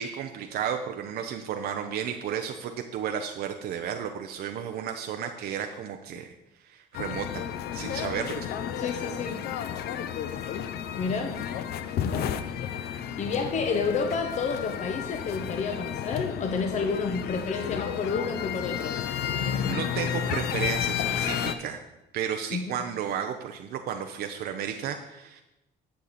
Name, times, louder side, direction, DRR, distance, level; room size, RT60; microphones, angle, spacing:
voice 1, 0.0-6.3 6.6-8.5 19.7-21.8 22.1-25.4, right 8 dB, 70° right, 5 dB, 0.7 m, -33 dB
sound 1, 6.9-21.6, left 9 dB, 70° left, 0.6 m, -32 dB
voice 2, 8.7-9.4 11.0-11.3 12.0-12.4 13.2-19.1 22.5-22.6, left 4 dB, 45° left, 5 dB, 0.9 m, -30 dB
10.5 x 6.6 x 4.1 m, 0.93 s
cardioid pair, 110°, 17 cm